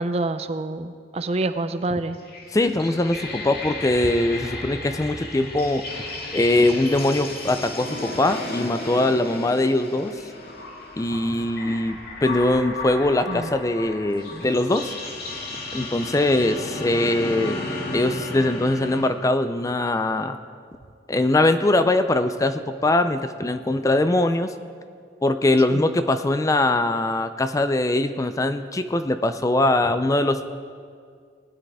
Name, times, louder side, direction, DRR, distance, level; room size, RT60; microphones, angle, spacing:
voice 1, 0.0-2.2 13.3-13.5 25.7-25.8, right 2 dB, 35° right, 10 dB, 0.6 m, -27 dB
sound 1, 2.1-19.1, left 2 dB, 60° left, 2.0 m, -34 dB
voice 2, 2.5-6.1 6.3-10.2 11.0-14.9 15.7-17.6 17.9-20.4 21.1-24.5 25.2-30.5, left 2 dB, 20° left, 10 dB, 0.4 m, -22 dB
19.0 x 10.0 x 4.8 m, 2.1 s
head